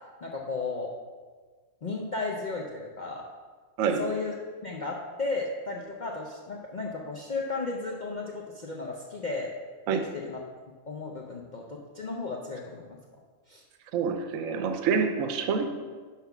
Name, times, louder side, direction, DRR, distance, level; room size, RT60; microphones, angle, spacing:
voice 1, 0.2-0.9 1.8-3.3 4.0-4.3 4.6-9.5 9.9-10.4 10.9-13.0 13.5-13.6, left 3 dB, 45° left, -2 dB, 0.6 m, -34 dB
voice 2, 13.9-15.7, right 6 dB, 70° right, 7 dB, 1.0 m, -27 dB
5.9 x 5.3 x 5.8 m, 1.5 s
omnidirectional pair, 1.5 m